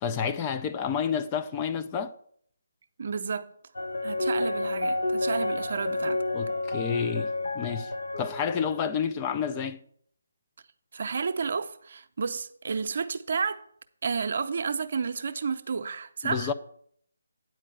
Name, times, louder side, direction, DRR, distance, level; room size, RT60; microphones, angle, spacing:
voice 1, 0.0-2.1 6.3-7.9 8.2-9.8 16.2-16.5, left 7 dB, 20° left, 0.4 m, -29 dB
voice 2, 3.0-3.5 4.0-6.2 10.9-13.6 14.0-16.5, right 5 dB, 50° right, 0.6 m, -31 dB
sound 1, 3.7-8.8, left 2 dB, 70° left, 1.0 m, -30 dB
9.2 x 4.5 x 7.5 m
figure-of-eight pair, 155°, 0 cm